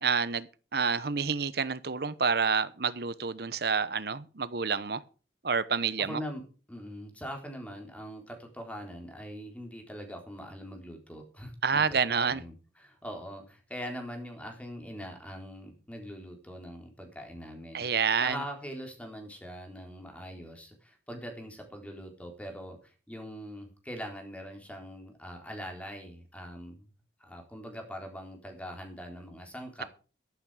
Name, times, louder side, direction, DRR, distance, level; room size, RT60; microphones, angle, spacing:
voice 1, 0.0-5.0 5.4-6.2 11.6-12.4 17.7-18.4, right 5 dB, 60° right, 1.0 m, -28 dB
voice 2, 6.1-6.4 6.7-26.9 27.2-29.9, equal, 5° left, 3.8 m, -42 dB
13.0 x 12.0 x 4.9 m
head